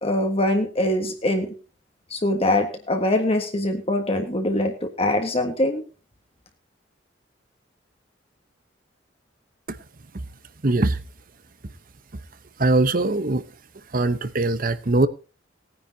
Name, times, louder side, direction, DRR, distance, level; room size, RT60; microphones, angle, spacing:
voice 1, 0.0-1.5 2.1-5.8, left 1 dB, 30° left, 4 dB, 1.6 m, -23 dB
voice 2, 10.6-11.0 12.6-13.5 13.7-15.1, right 2 dB, 45° right, 14 dB, 1.0 m, -22 dB
19.0 x 9.8 x 2.8 m, 0.33 s
head